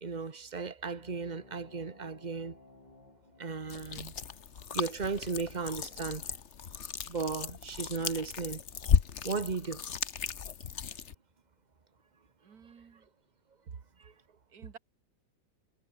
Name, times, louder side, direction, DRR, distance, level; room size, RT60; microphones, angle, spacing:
voice 1, 0.0-2.6 3.4-4.1 4.7-6.3 7.1-8.6 9.2-9.8, right 5 dB, 25° right, 1.5 m, -35 dB
sound 1, 0.8-5.9, left 2 dB, 85° left, 7.7 m, -59 dB
sound 2, 3.7-11.1, left 7 dB, 45° left, 1.3 m, -34 dB
voice 2, 12.4-13.1 13.7-13.8 14.3-14.8, right 6 dB, 60° right, 2.3 m, -49 dB
omnidirectional pair, 1.9 m